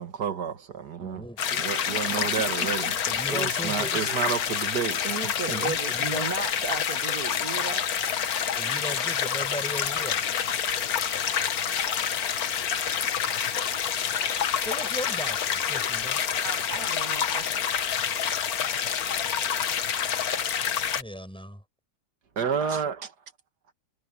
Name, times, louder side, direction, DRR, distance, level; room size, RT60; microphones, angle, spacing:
voice 1, 0.0-1.3 1.5-3.0 3.3-5.1 5.5-5.7 22.4-23.1, right 7 dB, 80° right, 2.1 m, -30 dB
voice 2, 1.0-1.4 3.1-3.9 5.5-6.3 8.6-10.2 14.6-16.2 21.0-21.6, equal, 5° left, 7.4 m, -37 dB
sound 1, 1.4-21.0, left 8 dB, 65° left, 1.6 m, -27 dB
voice 3, 5.0-7.9 16.4-17.5, right 5 dB, 65° right, 1.9 m, -35 dB
omnidirectional pair, 1.7 m